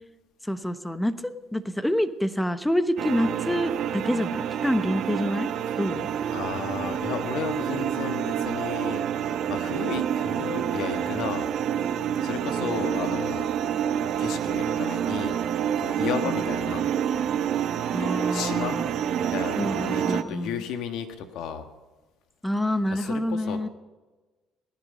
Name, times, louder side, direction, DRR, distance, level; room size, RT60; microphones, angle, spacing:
voice 1, 0.4-5.5 5.8-6.1 16.2-16.7 17.9-18.9 19.6-20.6 22.4-23.7, equal, 5° left, 11 dB, 1.0 m, -27 dB
sound 1, 3.0-20.2, right 9 dB, 65° right, 0.8 m, -28 dB
voice 2, 6.3-11.5 12.2-13.5 14.2-16.8 18.0-18.8 19.2-21.7 22.9-23.7, left 7 dB, 75° left, 7 dB, 1.5 m, -34 dB
19.0 x 11.0 x 5.3 m, 1.2 s
supercardioid pair, 80°, 0 cm